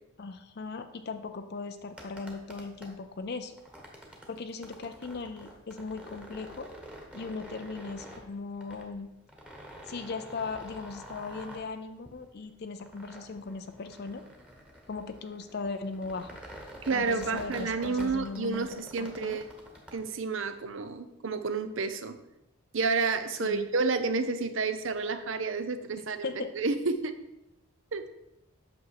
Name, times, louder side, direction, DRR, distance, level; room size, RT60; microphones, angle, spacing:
voice 1, 0.2-3.6 4.3-6.7 7.1-9.1 9.9-14.2 14.9-16.4 16.9-19.4 23.4-23.7 26.0-26.5, left 4 dB, 50° left, 8 dB, 0.5 m, -38 dB
sound 1, 1.9-19.9, equal, 5° right, 1.2 m, -48 dB
voice 2, 16.8-19.4 19.9-22.2 22.7-27.1 27.9-28.0, right 4 dB, 65° right, 10 dB, 0.7 m, -30 dB
8.3 x 6.3 x 4.8 m, 0.90 s
head